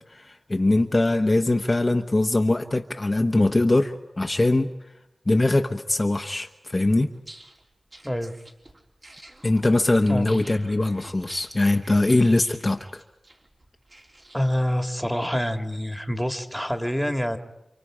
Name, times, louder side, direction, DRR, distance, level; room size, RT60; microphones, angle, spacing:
voice 1, 0.1-4.7 5.3-7.1 9.4-13.0, left 2 dB, 35° left, 5 dB, 1.1 m, -22 dB
sound 1, 7.1-14.7, right 1 dB, 45° right, 4.1 m, -48 dB
voice 2, 14.3-17.4, equal, ahead, 6 dB, 2.1 m, -26 dB
30.0 x 26.5 x 5.0 m, 0.91 s
wide cardioid pair, 70°, 0 cm